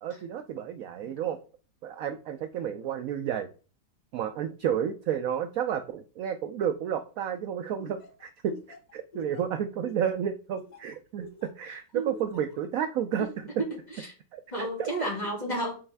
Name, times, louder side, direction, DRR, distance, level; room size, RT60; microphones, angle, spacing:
voice 1, 0.0-1.4 1.8-3.5 4.1-8.5 8.9-13.5 14.3-14.9 15.2-15.6, right 9 dB, 70° right, 9 dB, 0.8 m, -31 dB
Laughter, 7.8-11.7 12.1-12.6, left 2 dB, 85° left, 0.3 m, -47 dB
voice 2, 13.7-14.1 14.5-15.7, right 1 dB, 25° left, -2 dB, 2.3 m, -32 dB
7.1 x 4.1 x 3.3 m, 0.36 s
omnidirectional pair, 1.9 m